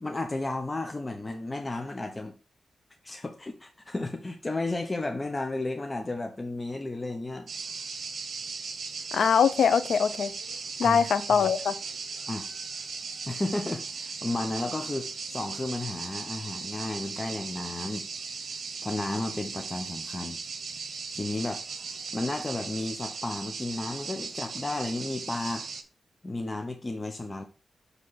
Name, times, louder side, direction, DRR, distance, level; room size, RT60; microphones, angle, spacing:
voice 1, 0.0-2.3 3.0-7.5 10.8-11.5 12.3-12.5 13.3-18.1 18.8-20.4 21.1-21.6 22.1-25.7 26.2-27.4, left 2 dB, 30° left, 0.8 m, -33 dB
sound 1, 7.5-25.8, right 5 dB, 70° right, 0.8 m, -38 dB
voice 2, 9.1-10.3 10.8-11.7, left 7 dB, 85° left, 0.5 m, -22 dB
7.6 x 3.2 x 4.1 m
cardioid pair, 70°, 0 cm